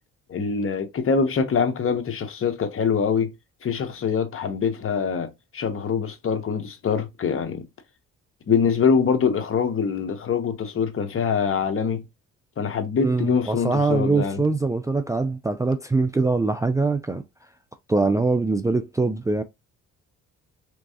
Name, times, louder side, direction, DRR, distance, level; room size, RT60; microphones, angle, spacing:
voice 1, 0.3-3.3 3.6-7.6 8.5-12.0 12.6-14.4, left 6 dB, 45° left, 0.9 m, -24 dB
voice 2, 13.0-17.2 17.9-19.4, right 3 dB, 10° right, 0.3 m, -23 dB
3.5 x 3.0 x 2.7 m
cardioid pair, 90°, 30 cm